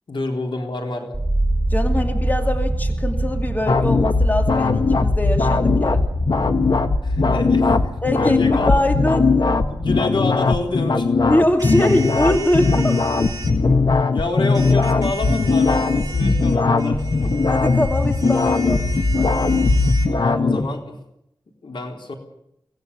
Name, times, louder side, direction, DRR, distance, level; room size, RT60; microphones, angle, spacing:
voice 1, 0.1-1.2 7.0-8.8 9.7-11.1 14.1-17.4 19.4-19.7 20.1-21.0 21.6-22.1, left 2 dB, 80° left, 2 dB, 4.0 m, -28 dB
sound 1, 1.1-11.1 11.4-12.1, right 2 dB, 15° right, 3.0 m, -26 dB
voice 2, 1.7-6.0 8.0-8.4 8.7-9.3 11.3-13.0 17.5-19.3, left 1 dB, 20° left, 4 dB, 2.6 m, -22 dB
sound 2, 3.7-20.7, left 3 dB, 65° left, 1.4 m, -19 dB
sound 3, 11.6-13.5 14.5-20.1, right 3 dB, 45° right, 4.6 m, -36 dB
24.0 x 18.0 x 7.0 m, 0.80 s
wide cardioid pair, 80°, 8 cm